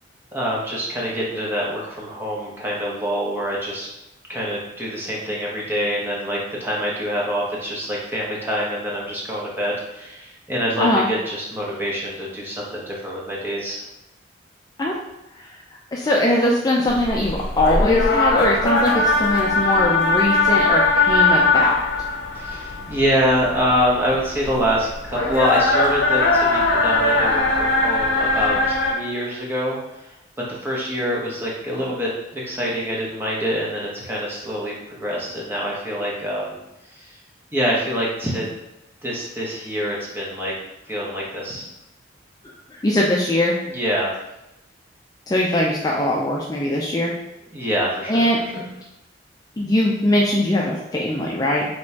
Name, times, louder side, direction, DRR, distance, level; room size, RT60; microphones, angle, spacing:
voice 1, 0.3-3.9 4.3-13.9 22.3-29.8 30.0-30.2 30.5-36.6 36.9-37.1 37.5-38.5 39.0-40.5 40.9-41.7 43.6-44.1 47.5-48.2, equal, 10° right, -5 dB, 1.0 m, -25 dB
voice 2, 10.8-11.1 14.8-15.0 15.4-15.6 15.9-21.7 42.8-43.6 45.3-47.2 48.1-48.7 49.6-51.7, left 1 dB, 20° left, -3 dB, 0.4 m, -21 dB
sound 1, 16.9-28.9, left 3 dB, 80° left, 0.8 m, -20 dB
5.1 x 3.0 x 2.8 m, 0.91 s
head